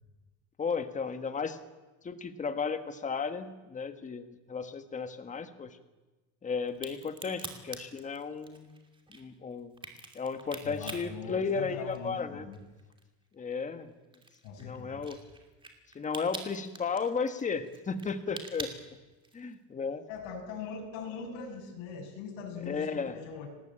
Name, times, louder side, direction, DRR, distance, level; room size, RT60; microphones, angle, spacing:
voice 1, 0.6-1.6 2.0-5.8 6.4-8.8 9.1-9.7 10.1-12.5 13.3-13.9 14.6-15.2 15.9-19.0 19.3-20.0 22.7-23.2, left 5 dB, 15° left, 9 dB, 1.4 m, -34 dB
Crack, 6.7-12.2 12.5-19.5, right 3 dB, 10° right, 2.7 m, -45 dB
voice 2, 10.6-12.6 14.4-15.0 20.1-23.5, left 5 dB, 90° left, 1 dB, 7.0 m, -41 dB
27.5 x 19.5 x 8.7 m, 1.2 s
cardioid pair, 180°, 45 cm